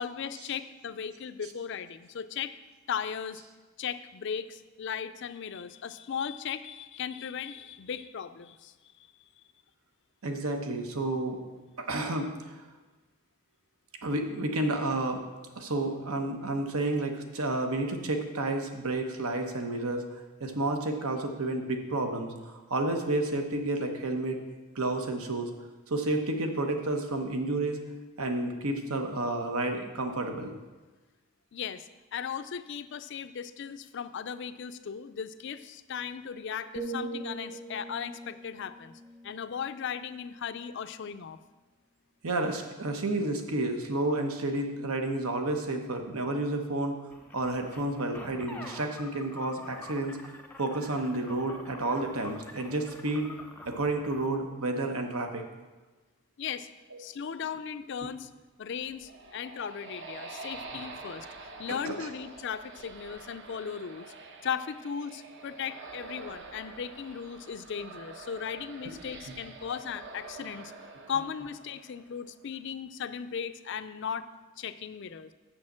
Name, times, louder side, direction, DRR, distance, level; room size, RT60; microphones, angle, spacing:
voice 1, 0.0-2.6 2.9-3.4 3.8-8.7 31.5-41.4 56.4-56.7 57.0-58.3 58.6-61.3 61.6-64.1 64.4-70.7 71.1-74.3 74.6-75.3, left 7 dB, 55° left, 12 dB, 0.4 m, -37 dB
voice 2, 10.2-11.4 11.8-12.5 14.0-15.3 15.6-20.0 20.4-24.4 24.7-25.5 25.9-27.8 28.2-30.5 42.2-47.0 47.3-50.2 50.6-53.3 53.6-55.4 61.7-62.1 69.3-69.4, right 2 dB, 80° right, 5 dB, 1.0 m, -30 dB
sound 1, 36.8-40.7 41.1-41.4, right 2 dB, 25° right, 0.9 m, -42 dB
sound 2, 47.1-54.4, left 2 dB, 5° left, 0.6 m, -47 dB
sound 3, 58.7-72.3, right 3 dB, 55° right, 0.9 m, -47 dB
6.4 x 6.4 x 7.4 m, 1.2 s
head